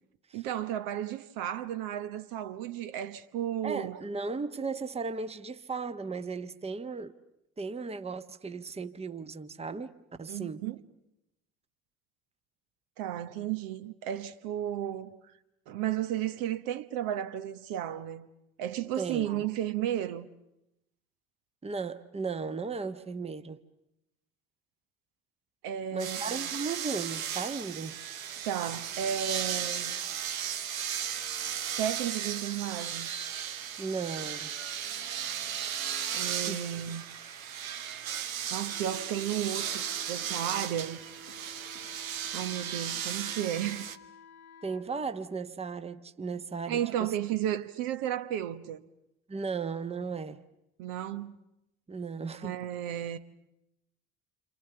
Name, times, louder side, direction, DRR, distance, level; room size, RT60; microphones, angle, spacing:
voice 1, 0.3-4.0 10.3-10.8 13.0-15.2 15.7-18.3 18.6-20.3 25.6-26.5 28.4-29.9 31.8-33.1 36.1-37.0 38.5-41.0 42.3-43.9 46.7-48.8 50.8-51.3 52.4-53.2, right 11 dB, 55° right, 1.3 m, -33 dB
voice 2, 3.6-7.1 7.6-10.6 19.0-19.4 21.6-23.6 25.9-28.0 33.8-34.5 36.5-36.7 44.6-47.1 49.3-50.4 51.9-52.6, right 4 dB, 15° right, 1.2 m, -36 dB
sound 1, 26.0-44.0, right 9 dB, 75° right, 1.2 m, -36 dB
Wind instrument woodwind instrument, 38.7-44.9, left 4 dB, 80° left, 1.8 m, -53 dB
28.5 x 27.0 x 6.9 m
figure-of-eight pair, 60°, 41 cm